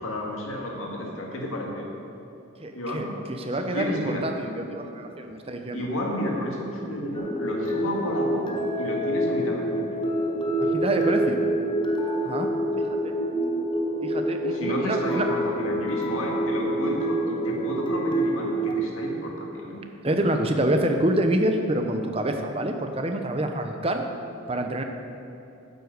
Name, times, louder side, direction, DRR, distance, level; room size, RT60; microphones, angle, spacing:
voice 1, 0.0-1.9 2.7-3.2 3.5-4.2 5.7-10.0 14.5-19.8, left 1 dB, 85° left, -1 dB, 2.0 m, -32 dB
voice 2, 2.6-5.9 10.6-11.4 12.2-12.5 12.8-13.2 14.0-15.3 20.0-24.0 24.5-24.8, right 1 dB, 30° right, 4 dB, 0.8 m, -27 dB
sound 1, 7.1-18.7, right 1 dB, 25° left, 0.8 m, -27 dB
9.9 x 7.9 x 6.7 m, 2.8 s
head